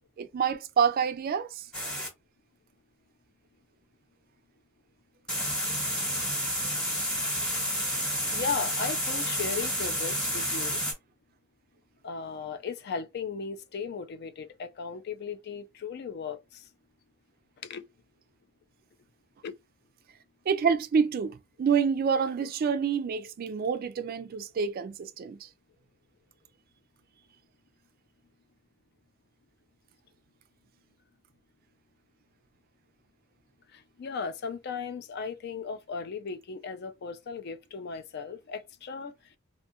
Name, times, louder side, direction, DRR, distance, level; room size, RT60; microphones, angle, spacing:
voice 1, 0.2-1.6 20.5-25.5, right 6 dB, 45° right, 0.3 m, -27 dB
sound 1, 1.7-2.1 5.3-10.9, equal, 5° left, 0.9 m, -30 dB
voice 2, 8.3-10.8 12.0-16.6 17.6-17.8 19.4-19.6 33.7-39.1, left 5 dB, 55° left, 0.4 m, -36 dB
2.6 x 2.3 x 2.8 m
head